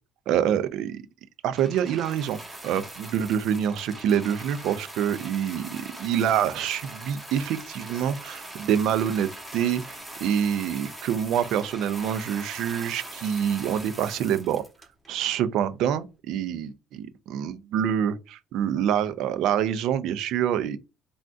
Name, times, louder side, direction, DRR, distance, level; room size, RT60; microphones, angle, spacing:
voice 1, 0.3-1.0 1.4-9.8 10.2-14.6 15.1-20.8, right 9 dB, 75° right, 0.4 m, -26 dB
sound 1, 1.6-15.2 16.0-16.1, right 1 dB, 10° right, 1.1 m, -42 dB
3.6 x 2.3 x 2.5 m
cardioid pair, 110°, 0 cm